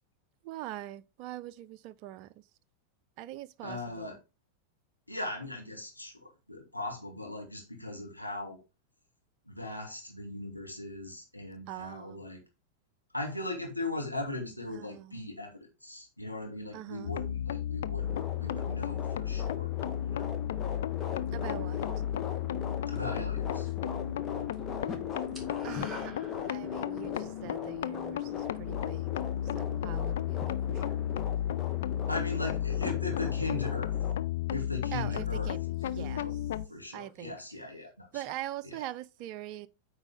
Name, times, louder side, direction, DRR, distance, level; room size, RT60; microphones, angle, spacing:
voice 1, 0.4-2.4 3.2-4.2 11.7-12.3 14.7-15.2 16.7-17.1 21.3-21.8 25.6-26.1 26.5-29.1 29.6-31.0 34.9-36.3 36.9-37.4 38.1-39.7, right 14 dB, 40° right, 0.5 m, -43 dB
voice 2, 3.6-4.2 5.1-8.6 9.4-12.4 13.1-20.3 22.9-23.7 32.1-33.9 34.5-36.3 36.7-38.3 38.6-38.9, left 2 dB, 90° left, 2.2 m, -39 dB
sound 1, 17.0-36.7, left 11 dB, 60° left, 0.5 m, -33 dB
sound 2, 18.0-34.1, left 6 dB, 25° left, 1.3 m, -41 dB
sound 3, 22.9-23.9 24.2-24.6 24.8-26.9, right 1 dB, ahead, 2.9 m, -48 dB
8.8 x 4.8 x 3.6 m
figure-of-eight pair, 90°, 0 cm